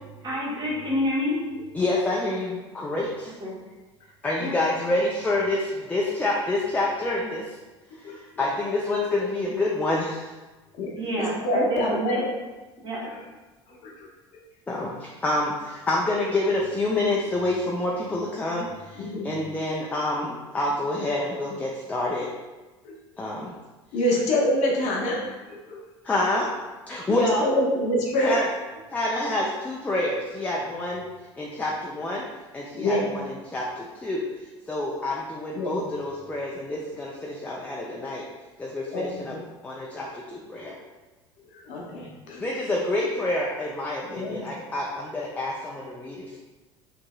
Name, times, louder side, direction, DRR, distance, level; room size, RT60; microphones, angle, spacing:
voice 1, 0.2-1.4 3.4-3.5 4.4-4.5 10.9-12.2 12.8-13.0, left 1 dB, 30° right, -6 dB, 1.1 m, -28 dB
voice 2, 1.7-3.3 4.2-7.6 8.0-10.3 14.7-22.3 23.2-23.5 26.0-26.5 26.9-27.5 28.2-28.5 28.9-31.1 31.4-32.2 32.5-34.2 34.7-38.2 38.6-39.3 39.6-40.7 42.4-46.4, left 2 dB, 10° left, -3 dB, 0.4 m, -27 dB
voice 3, 10.8-12.3 13.0-13.1 13.8-13.9 19.0-19.4 22.8-22.9 23.4-23.5 23.9-25.8 27.1-28.4 32.7-33.1 35.5-35.8 38.9-39.4 39.9-40.1 41.5-42.5 44.0-44.5, left 1 dB, 55° left, -2 dB, 0.7 m, -26 dB
2.9 x 2.6 x 2.3 m, 1.2 s
hypercardioid pair, 70°, 14 cm